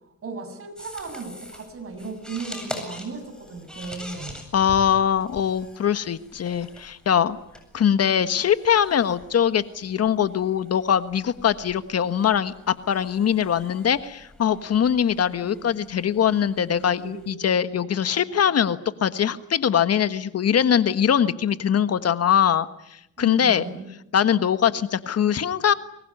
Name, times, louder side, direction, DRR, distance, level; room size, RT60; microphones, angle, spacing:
voice 1, 0.2-4.4 23.2-23.9, right 4 dB, 45° right, 7 dB, 7.3 m, -35 dB
sound 1, 0.8-17.3, equal, 5° left, 8.0 m, -44 dB
voice 2, 4.5-7.4 7.7-22.7 23.2-23.6 24.1-25.7, left 8 dB, 55° left, 12 dB, 1.5 m, -22 dB
sound 2, 15.1-19.3, right 5 dB, 75° right, 3.9 m, -45 dB
25.0 x 21.5 x 9.9 m, 0.81 s
cardioid pair, 90°, 30 cm